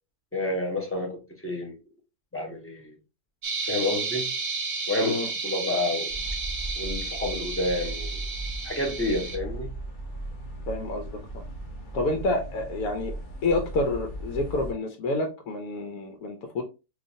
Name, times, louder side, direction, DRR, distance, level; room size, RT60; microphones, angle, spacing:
voice 1, 0.3-1.8 2.3-2.9 3.7-4.3 4.9-6.1 6.8-8.2 8.6-9.7, left 2 dB, 20° left, 0.4 m, -29 dB
sound 1, 3.4-9.4, right 4 dB, 50° right, 0.6 m, -32 dB
sound 2, 6.1-14.7, right 1 dB, 40° left, 0.9 m, -37 dB
voice 2, 10.7-11.4 11.9-13.1 13.4-16.6, left 2 dB, 80° left, 1.1 m, -28 dB
4.8 x 2.5 x 2.6 m
omnidirectional pair, 1.6 m